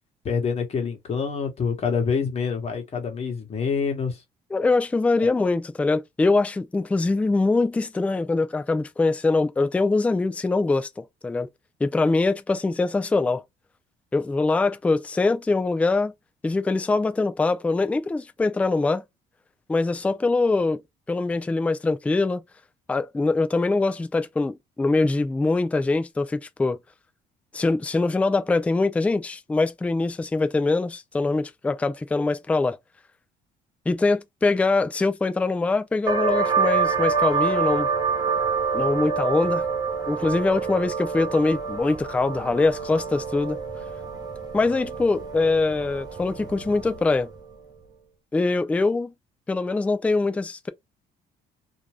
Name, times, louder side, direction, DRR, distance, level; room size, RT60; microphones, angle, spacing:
voice 1, 0.2-4.2, left 5 dB, 40° left, 1.2 m, -26 dB
voice 2, 4.5-11.5 11.8-13.4 14.1-16.1 16.4-19.0 19.7-20.8 21.1-22.4 22.9-26.8 27.5-32.8 33.9-37.9 38.7-39.6 40.1-43.6 44.5-47.3 48.3-49.1 49.5-50.7, left 3 dB, 10° left, 0.3 m, -23 dB
sound 1, 36.1-47.4, right 5 dB, 20° right, 0.9 m, -27 dB
2.6 x 2.2 x 3.1 m
cardioid pair, 110°, 17 cm